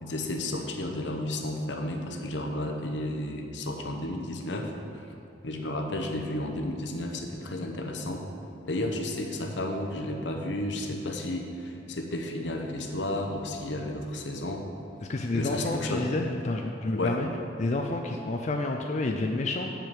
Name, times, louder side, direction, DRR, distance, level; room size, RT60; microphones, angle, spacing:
voice 1, 0.0-5.0 5.4-8.2 8.7-14.7 15.3-16.1 16.9-17.2, left 1 dB, 75° left, 3 dB, 0.9 m, -32 dB
voice 2, 15.1-17.3 17.6-19.7, left 2 dB, 40° left, 2 dB, 0.4 m, -29 dB
7.7 x 5.0 x 7.4 m, 2.7 s
head